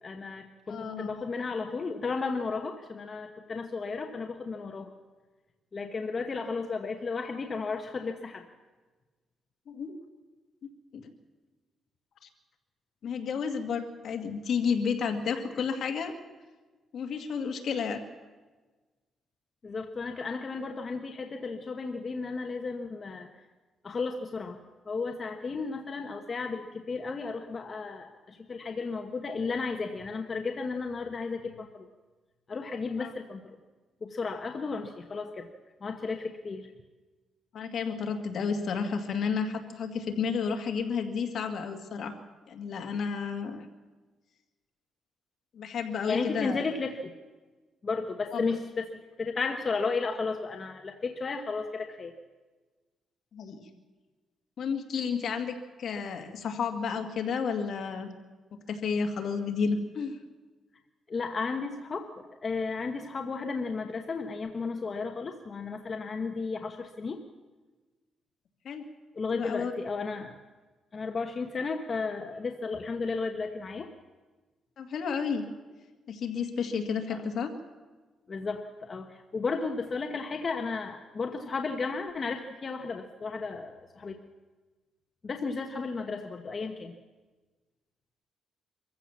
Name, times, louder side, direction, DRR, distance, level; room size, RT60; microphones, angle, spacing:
voice 1, 0.0-4.9 5.7-8.5 19.6-23.3 23.8-24.6 24.8-31.9 32.5-33.6 34.0-35.5 35.8-36.7 46.1-47.1 47.8-52.1 61.1-67.2 69.1-70.4 70.9-73.9 77.1-77.2 78.3-84.2 85.2-87.0, left 4 dB, 35° left, 5 dB, 1.1 m, -34 dB
voice 2, 0.7-1.2 9.7-9.9 10.9-11.1 12.2-12.3 13.0-16.1 16.9-18.0 33.0-33.1 37.5-42.2 42.5-43.7 45.5-46.6 48.3-48.4 53.3-53.7 54.6-58.1 58.5-60.2 68.6-68.8 69.3-69.8 74.8-75.4 76.1-77.5 85.7-85.9, left 6 dB, 60° left, 5 dB, 2.1 m, -31 dB
24.0 x 15.0 x 7.2 m, 1.3 s
cardioid pair, 125°, 0 cm